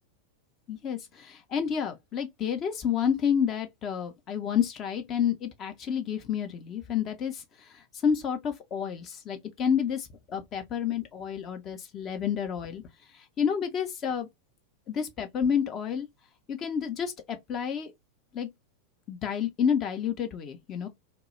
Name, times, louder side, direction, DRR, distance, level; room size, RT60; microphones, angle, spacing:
voice 1, 0.7-12.8 13.4-14.3 14.9-16.1 16.5-17.9 18.3-18.5 19.1-20.9, left 7 dB, 30° left, 0.5 m, -30 dB
2.2 x 2.0 x 2.9 m
figure-of-eight pair, 90°, 0 cm